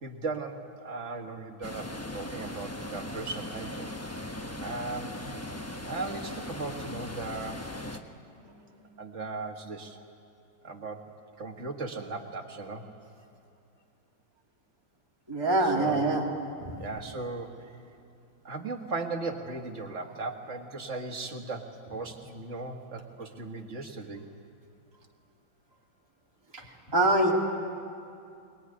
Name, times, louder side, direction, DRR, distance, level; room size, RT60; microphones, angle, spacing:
voice 1, 0.0-3.9 4.6-5.2 5.9-7.7 9.0-10.0 10.6-11.1 11.4-12.9 15.7-16.0 16.8-17.5 18.4-24.2, right 3 dB, 40° right, 3 dB, 1.9 m, -37 dB
sound 1, 1.6-8.0, left 1 dB, 15° left, 0.5 m, -39 dB
voice 2, 15.3-16.3 16.6-16.7 26.5-27.3, right 2 dB, 15° right, -3 dB, 2.6 m, -25 dB
22.5 x 20.5 x 9.9 m, 2.5 s
omnidirectional pair, 2.1 m